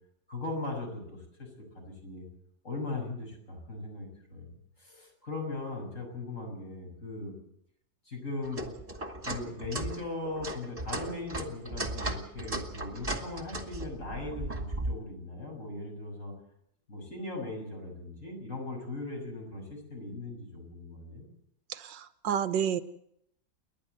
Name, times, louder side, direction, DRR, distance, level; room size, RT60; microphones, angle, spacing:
voice 1, 0.3-1.5 1.7-2.2 2.6-4.5 4.8-7.4 8.0-8.7 9.2-16.3 16.9-21.3, left 2 dB, 45° left, 0 dB, 6.8 m, -39 dB
sound 1, 8.4-15.0, right 1 dB, 20° right, 2.1 m, -36 dB
voice 2, 21.7-22.8, right 8 dB, 80° right, 12 dB, 1.6 m, -30 dB
29.5 x 11.0 x 8.0 m, 0.74 s
omnidirectional pair, 1.9 m